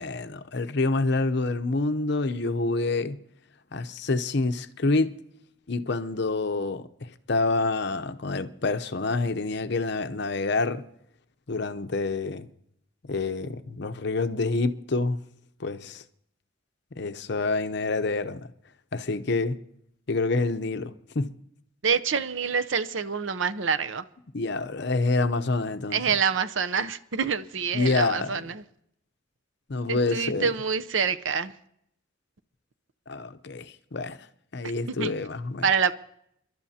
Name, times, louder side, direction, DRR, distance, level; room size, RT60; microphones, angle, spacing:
voice 1, 0.0-3.2 3.7-5.1 5.7-6.9 7.3-10.8 11.5-12.5 13.0-15.2 15.6-16.0 17.0-18.4 18.9-19.6 20.1-21.3 24.3-26.0 27.7-28.5 29.7-30.5 33.1-34.2 34.5-35.7, left 3 dB, 55° left, 0.7 m, -27 dB
voice 2, 21.8-24.0 25.9-28.6 29.9-31.5 35.0-35.1 35.6-35.9, right 6 dB, 75° right, 0.7 m, -26 dB
29.5 x 12.0 x 2.8 m
head